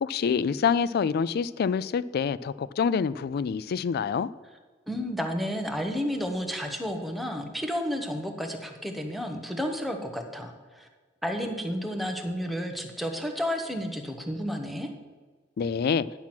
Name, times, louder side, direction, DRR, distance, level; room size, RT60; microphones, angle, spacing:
voice 1, 0.0-4.3 15.6-16.1, left 6 dB, 55° left, 18 dB, 0.3 m, -26 dB
voice 2, 4.9-10.9 11.2-14.9, equal, ahead, 3 dB, 0.9 m, -31 dB
10.5 x 6.0 x 5.9 m, 1.4 s
head